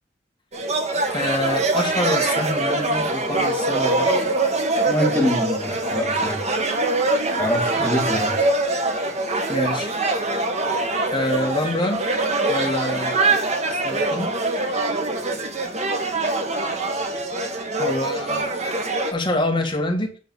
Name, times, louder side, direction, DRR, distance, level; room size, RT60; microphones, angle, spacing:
sound 1, 0.5-19.1, right 2 dB, 40° right, 1.4 m, -23 dB
voice 1, 1.1-4.3 7.8-8.1 9.5-9.9 11.1-12.0 12.5-13.4 13.7-14.3 17.8-18.5 19.1-20.1, left 1 dB, 25° left, 2 dB, 2.0 m, -26 dB
voice 2, 4.9-6.4 7.4-8.5, left 1 dB, 10° left, -1 dB, 2.7 m, -25 dB
9.2 x 3.9 x 6.8 m, 0.38 s
head